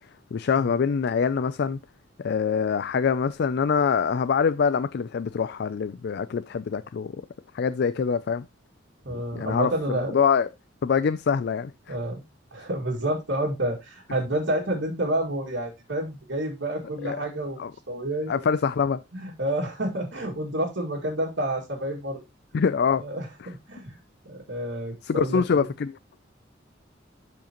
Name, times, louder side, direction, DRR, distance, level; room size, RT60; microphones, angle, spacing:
voice 1, 0.3-1.8 2.2-7.1 7.5-8.5 9.3-10.5 10.8-11.7 17.0-17.2 17.6-17.7 18.3-19.0 22.5-23.0 25.0-26.2, left 6 dB, 60° left, 0.4 m, -24 dB
voice 2, 9.0-10.2 11.9-12.2 12.5-17.6 17.9-18.4 19.1-22.2 23.0-23.9 24.2-25.7, right 1 dB, 75° right, 2.2 m, -29 dB
12.0 x 4.9 x 3.0 m
head